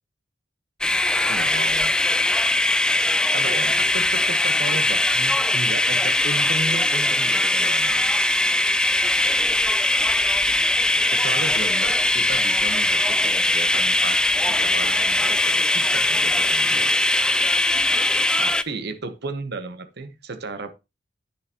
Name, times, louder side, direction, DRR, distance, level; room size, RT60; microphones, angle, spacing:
sound 1, 0.8-18.6, left 2 dB, 5° left, 0.3 m, -21 dB
voice 1, 1.2-2.0 3.3-8.2 11.1-17.0 18.4-20.7, right 3 dB, 60° right, 1.0 m, -34 dB
9.6 x 6.8 x 2.9 m
head